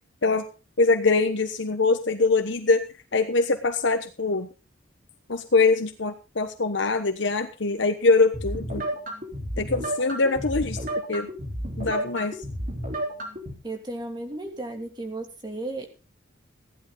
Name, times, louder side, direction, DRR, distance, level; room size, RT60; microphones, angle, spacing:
voice 1, 0.8-2.8 3.1-4.5 5.3-8.8 9.6-10.8 11.1-11.3 11.8-12.3, left 3 dB, 65° left, 6 dB, 1.1 m, -23 dB
sound 1, 8.3-13.5, right 1 dB, 45° right, 3.9 m, -32 dB
voice 2, 13.6-16.1, right 2 dB, 20° right, 4 dB, 2.7 m, -34 dB
15.5 x 11.0 x 4.0 m, 0.33 s
head